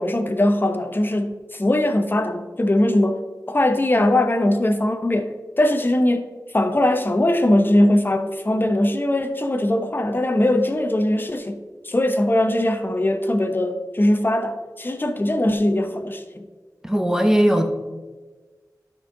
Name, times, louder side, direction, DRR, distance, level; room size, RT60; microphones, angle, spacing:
voice 1, 0.0-6.3 6.5-11.6 11.8-16.4, left 1 dB, 30° left, 7 dB, 0.8 m, -20 dB
voice 2, 16.8-17.7, equal, 10° right, 5 dB, 1.0 m, -18 dB
12.0 x 5.4 x 3.8 m, 1.3 s
wide cardioid pair, 55°, 7 cm